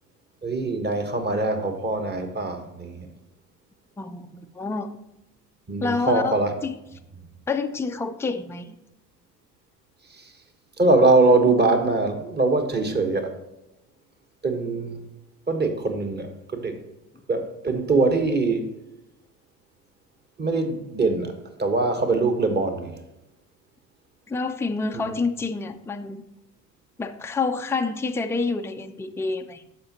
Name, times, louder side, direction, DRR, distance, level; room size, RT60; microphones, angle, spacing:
voice 1, 0.4-3.1 5.7-6.5 10.8-13.3 14.4-15.0 15.5-16.8 17.3-18.7 20.4-21.3 21.6-23.0 24.9-25.1, right 3 dB, 20° right, 6 dB, 1.4 m, -22 dB
voice 2, 4.0-4.9 5.8-6.7 7.5-8.8 24.3-26.2 27.0-29.6, left 4 dB, 5° left, 6 dB, 0.5 m, -28 dB
13.5 x 5.1 x 3.0 m, 0.89 s
hypercardioid pair, 65°, 48 cm